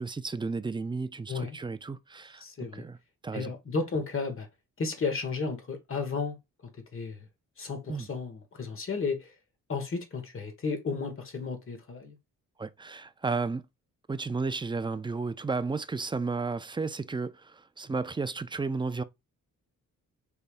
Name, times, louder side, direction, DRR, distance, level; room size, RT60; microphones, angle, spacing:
voice 1, 0.0-2.4 2.7-3.0 3.2-3.5 7.9-8.1 12.6-13.6 14.1-19.0, right 4 dB, 15° right, 0.3 m, -33 dB
voice 2, 2.4-2.9 3.3-4.5 4.8-6.4 6.9-7.2 7.6-9.3 9.7-12.2, left 4 dB, 40° left, 1.4 m, -33 dB
5.4 x 3.4 x 2.5 m
cardioid pair, 90°, 31 cm